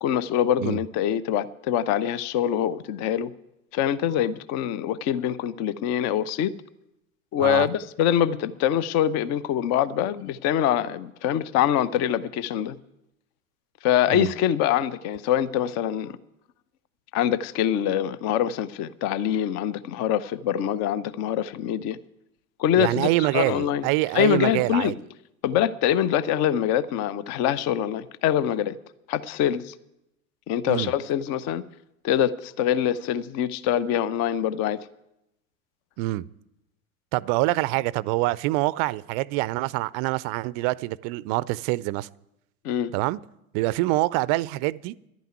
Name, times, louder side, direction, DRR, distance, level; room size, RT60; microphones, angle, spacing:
voice 1, 0.0-3.3 3.7-6.5 7.3-12.8 13.8-16.2 17.1-22.0 22.6-23.9 24.1-24.9 25.4-28.8 29.1-29.7 30.5-31.6 32.0-34.9 42.6-42.9, left 10 dB, 40° left, 0.7 m, -24 dB
voice 2, 22.8-24.9 30.7-30.9 36.0-36.3 37.1-42.1 42.9-43.2 43.5-44.9, right 19 dB, 40° right, 0.5 m, -25 dB
11.5 x 9.2 x 9.4 m
figure-of-eight pair, 80°, 43 cm